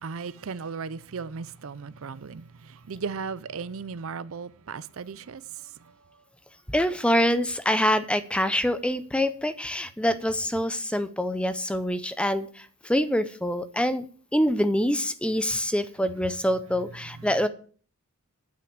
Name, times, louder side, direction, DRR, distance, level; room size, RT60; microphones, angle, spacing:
voice 1, 0.0-2.4 2.9-5.4, right 5 dB, 65° right, 0.5 m, -36 dB
voice 2, 6.7-14.1 14.3-17.5, equal, 5° left, 0.6 m, -25 dB
9.3 x 5.8 x 7.9 m
head